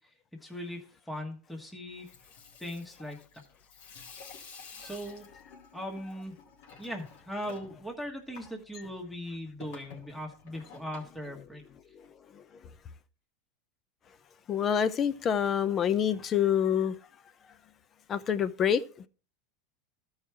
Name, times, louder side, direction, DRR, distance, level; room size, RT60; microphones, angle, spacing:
voice 1, 0.4-2.1 2.6-3.2 4.8-5.2 5.7-6.3 6.8-11.6, equal, 5° left, 1.4 m, -39 dB
Water tap faucet / Sink (filling or washing), 1.9-12.1, left 5 dB, 80° left, 2.4 m, -52 dB
voice 2, 14.5-17.0 18.1-18.9, left 8 dB, 30° left, 0.6 m, -27 dB
13.0 x 4.8 x 4.5 m
supercardioid pair, 130°, 0 cm